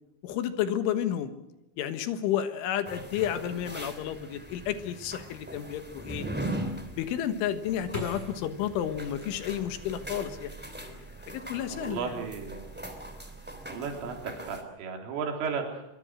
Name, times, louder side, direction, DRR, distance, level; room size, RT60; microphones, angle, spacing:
voice 1, 0.2-1.3 1.8-6.3 6.9-10.6 10.8-11.0 11.3-12.2, left 10 dB, 75° left, 9 dB, 3.7 m, -31 dB
sound 1, 2.8-14.6, right 1 dB, 5° right, 1.4 m, -40 dB
sound 2, 6.9-10.0 10.5-11.3 11.6-12.1, left 1 dB, 10° left, 7.2 m, -43 dB
voice 2, 11.7-12.6 13.3-13.4 13.7-16.0, right 5 dB, 75° right, 2 dB, 6.0 m, -34 dB
24.5 x 23.5 x 6.3 m, 0.92 s
omnidirectional pair, 5.9 m